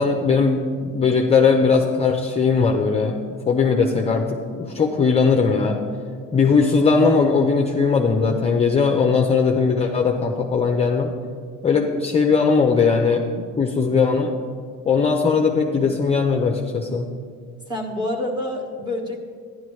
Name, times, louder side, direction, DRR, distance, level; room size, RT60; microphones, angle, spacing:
voice 1, 0.0-3.2 3.5-5.8 6.3-11.1 11.6-13.3 13.6-14.3 14.9-17.1, left 5 dB, 20° left, 2 dB, 0.6 m, -19 dB
voice 2, 17.7-19.2, left 1 dB, 15° right, 0 dB, 1.4 m, -27 dB
12.0 x 10.5 x 3.2 m, 2.1 s
cardioid pair, 135°, 33 cm